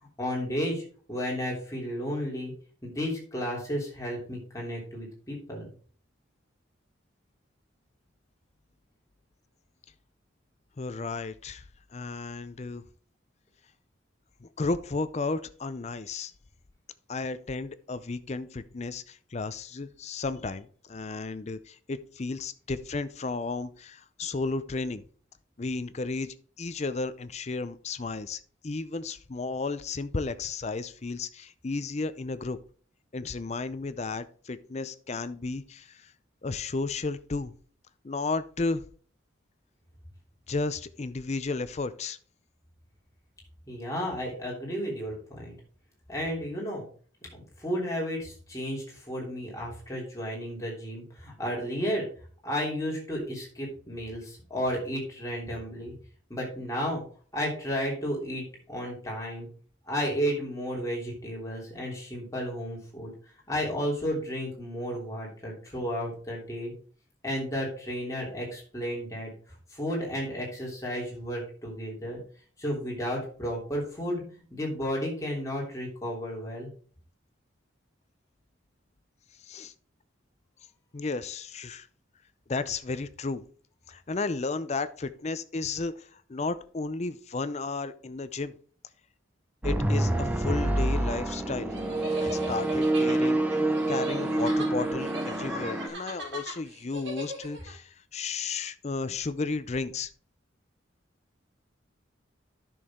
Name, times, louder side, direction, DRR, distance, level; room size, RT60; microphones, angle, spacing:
voice 1, 0.2-2.5 2.8-5.7 43.7-45.5 46.1-46.9 47.3-52.1 52.4-55.9 56.3-57.0 57.3-59.5 59.9-63.1 63.5-66.7 67.2-69.3 69.7-72.2 72.6-76.7, equal, 15° left, -3 dB, 3.2 m, -33 dB
voice 2, 10.8-11.6 11.9-12.8 14.4-16.3 17.1-25.0 25.6-32.6 33.1-36.1 36.4-37.5 38.0-38.8 40.5-42.2 79.4-79.7 80.9-81.9 82.5-83.4 83.9-88.5 89.6-91.7 92.2-100.1, left 3 dB, 35° left, 14 dB, 0.5 m, -33 dB
sound 1, 89.6-95.9, right 1 dB, 10° right, 0.9 m, -27 dB
sound 2, 91.7-97.7, equal, 65° right, 3.4 m, -40 dB
10.5 x 6.3 x 3.7 m, 0.43 s
head